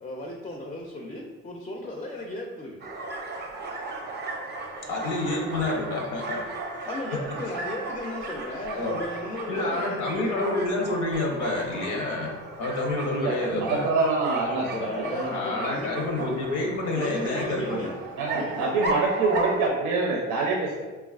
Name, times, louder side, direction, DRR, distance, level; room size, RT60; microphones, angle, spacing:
voice 1, 0.0-2.8 6.9-10.5 13.1-13.3 14.4-16.2 16.9-17.9 18.3-19.1, left 1 dB, 20° left, 0 dB, 0.3 m, -35 dB
sound 1, 2.8-19.7, right 2 dB, 35° right, 0.5 m, -36 dB
voice 2, 4.9-6.4 8.8-9.0 9.5-13.8 15.3-17.9, left 2 dB, 90° left, 0 dB, 0.7 m, -28 dB
voice 3, 13.2-14.7 15.1-15.7 18.2-20.9, right 3 dB, 90° right, -1 dB, 0.5 m, -26 dB
3.2 x 2.3 x 2.3 m, 1.2 s
cardioid pair, 90°, 30 cm